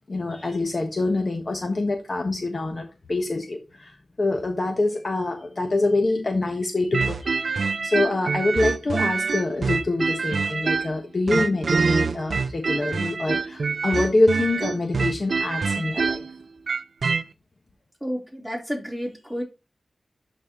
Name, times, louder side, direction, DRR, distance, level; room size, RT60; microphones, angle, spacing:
voice 1, 0.1-16.2, left 2 dB, 50° left, 3 dB, 1.3 m, -25 dB
sound 1, 6.9-11.0 11.3-17.2, right 4 dB, 70° right, 0.4 m, -25 dB
voice 2, 18.0-19.4, equal, 5° left, -2 dB, 3.8 m, -31 dB
11.5 x 4.4 x 3.1 m, 0.27 s
wide cardioid pair, 70°, 0 cm